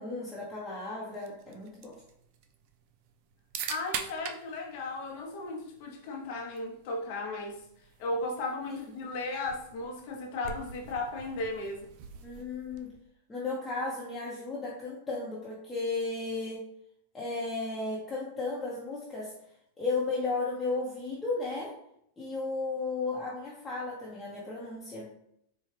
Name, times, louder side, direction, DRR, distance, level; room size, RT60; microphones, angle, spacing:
voice 1, 0.0-2.0 8.7-8.8 12.2-12.9 13.3-16.6 17.1-19.3 19.8-21.7 22.2-25.1, left 3 dB, 15° left, -6 dB, 0.9 m, -34 dB
sound 1, 1.1-13.1, right 7 dB, 55° right, 0.4 m, -45 dB
voice 2, 3.7-7.6 8.0-11.8, left 2 dB, 55° left, 1 dB, 0.7 m, -35 dB
4.3 x 2.3 x 3.3 m, 0.74 s
hypercardioid pair, 125°, 0 cm